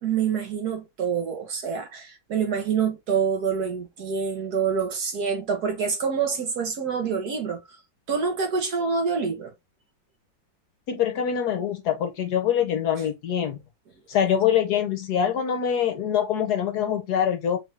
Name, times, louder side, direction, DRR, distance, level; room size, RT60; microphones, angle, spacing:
voice 1, 0.0-7.6 8.1-9.5, right 6 dB, 60° right, 1.5 m, -26 dB
voice 2, 10.9-13.6 14.1-17.6, left 9 dB, 65° left, 1.2 m, -24 dB
3.9 x 3.4 x 3.3 m
omnidirectional pair, 2.0 m